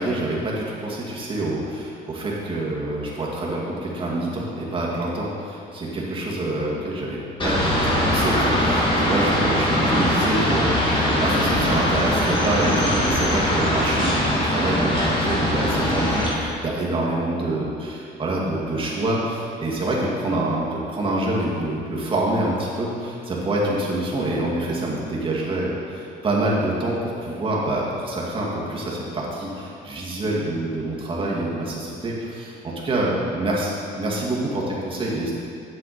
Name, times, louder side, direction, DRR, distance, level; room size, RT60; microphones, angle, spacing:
voice 1, 0.0-35.3, right 1 dB, 30° right, -5 dB, 2.1 m, -26 dB
sound 1, 7.4-16.3, left 1 dB, 30° left, 2.3 m, -21 dB
8.4 x 7.8 x 4.3 m, 2.6 s
cardioid pair, 110°, 17 cm